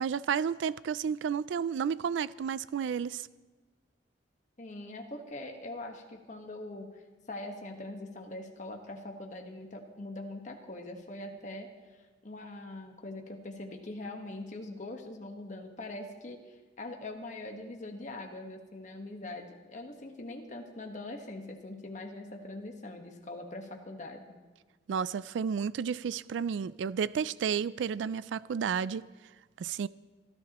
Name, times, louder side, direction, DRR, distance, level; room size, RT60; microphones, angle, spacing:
voice 1, 0.0-3.3 24.9-29.0 29.6-29.9, right 7 dB, 85° right, 0.3 m, -32 dB
voice 2, 4.6-7.0 7.3-11.7 12.0-24.4, left 2 dB, 45° left, 1.3 m, -42 dB
26.0 x 12.5 x 3.0 m
head